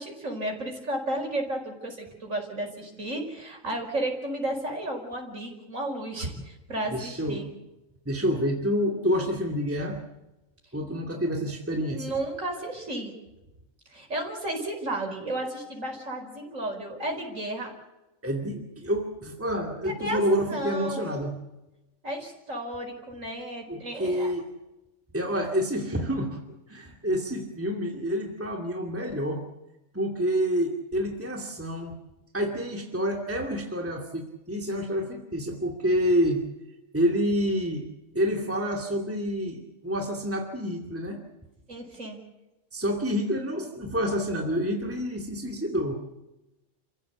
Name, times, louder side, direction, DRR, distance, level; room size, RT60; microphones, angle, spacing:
voice 1, 0.0-7.5 11.9-13.1 13.9-17.7 19.9-20.2 20.5-21.3 22.0-24.3 41.7-42.2, right 1 dB, 90° right, 2 dB, 5.4 m, -33 dB
voice 2, 6.9-7.4 8.1-10.0 10.7-12.1 18.2-21.3 23.7-24.4 25.1-26.4 26.7-29.4 29.9-32.0 32.3-36.4 36.9-37.9 38.1-41.2 42.7-46.0, equal, 10° right, 2 dB, 2.4 m, -28 dB
29.0 x 15.5 x 8.2 m, 0.99 s
omnidirectional pair, 1.3 m